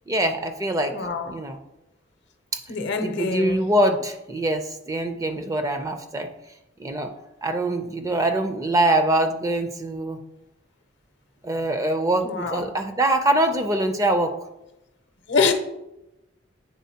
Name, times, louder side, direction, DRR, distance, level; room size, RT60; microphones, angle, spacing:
voice 1, 0.1-1.0 1.3-1.6 2.5-2.6 3.0-6.3 6.8-7.1 7.4-10.2 11.4-14.3, right 1 dB, 15° right, 0.4 m, -23 dB
voice 2, 0.9-1.4 2.7-3.7 12.2-12.7 15.3-15.5, left 4 dB, 60° left, 0.7 m, -25 dB
9.3 x 3.8 x 2.8 m
head